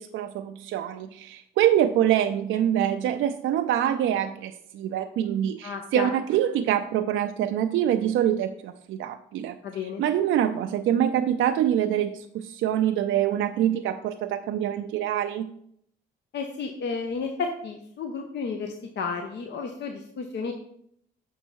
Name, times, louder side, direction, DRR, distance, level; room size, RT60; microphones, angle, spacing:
voice 1, 0.0-15.6, right 10 dB, 75° right, 6 dB, 0.4 m, -25 dB
voice 2, 5.6-6.1 9.6-10.0 16.3-20.5, left 5 dB, 60° left, 4 dB, 0.8 m, -32 dB
6.4 x 5.4 x 4.5 m, 0.70 s
cardioid pair, 90°, 20 cm